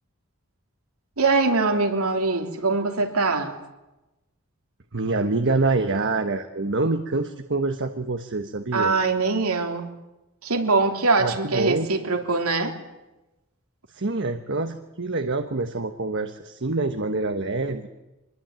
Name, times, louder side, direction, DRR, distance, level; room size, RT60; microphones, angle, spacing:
voice 1, 1.2-3.6 8.7-9.9 10.4-12.7, right 3 dB, 80° right, 4 dB, 3.3 m, -23 dB
voice 2, 4.9-9.0 11.2-11.9 13.9-17.9, right 3 dB, 55° right, 7 dB, 1.3 m, -26 dB
25.5 x 21.5 x 9.0 m, 1.0 s
head